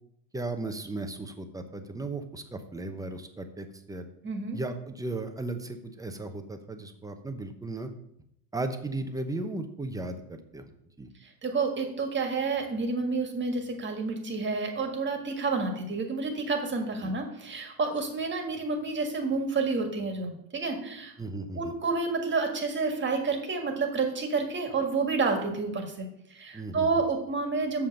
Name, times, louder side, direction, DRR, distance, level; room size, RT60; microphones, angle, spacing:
voice 1, 0.3-4.0 4.5-7.9 8.5-10.6 11.0-11.1 17.0-17.1 21.2-21.7 26.5-27.0, right 2 dB, 10° right, 7 dB, 0.8 m, -36 dB
voice 2, 4.2-4.6 11.2-21.1 21.5-27.9, right 4 dB, 25° right, 4 dB, 1.8 m, -29 dB
7.0 x 5.7 x 6.6 m, 0.77 s
supercardioid pair, 110°, 44 cm